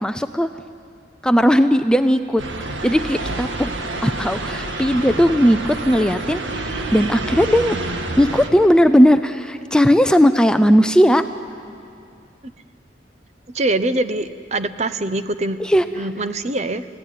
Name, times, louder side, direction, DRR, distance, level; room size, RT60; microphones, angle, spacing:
voice 1, 0.0-0.5 1.2-2.4 2.8-3.7 4.0-7.8 8.2-11.2 15.6-16.1, equal, 5° left, 9 dB, 0.5 m, -17 dB
sound 1, 2.4-8.5, right 2 dB, 85° right, 1.9 m, -28 dB
voice 2, 13.5-15.6 16.0-16.9, right 2 dB, 35° right, 11 dB, 0.8 m, -23 dB
29.5 x 16.5 x 9.2 m, 2.5 s
head